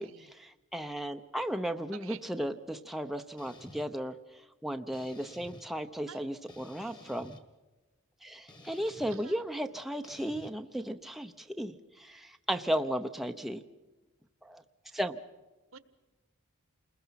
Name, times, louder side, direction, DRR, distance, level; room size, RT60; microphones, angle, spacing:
voice 1, 0.0-4.2 4.6-7.3 8.2-13.6 14.4-14.6 14.9-15.2, equal, ahead, 6 dB, 0.7 m, -35 dB
voice 2, 1.9-2.2 6.1-6.2 9.1-9.4 15.7-15.8, right 7 dB, 65° right, 13 dB, 1.3 m, -48 dB
sound 1, 3.4-3.9 4.9-5.6 6.5-7.4 8.5-9.2 10.0-10.5, left 1 dB, 20° left, 1.7 m, -52 dB
29.0 x 21.0 x 5.8 m, 1.1 s
head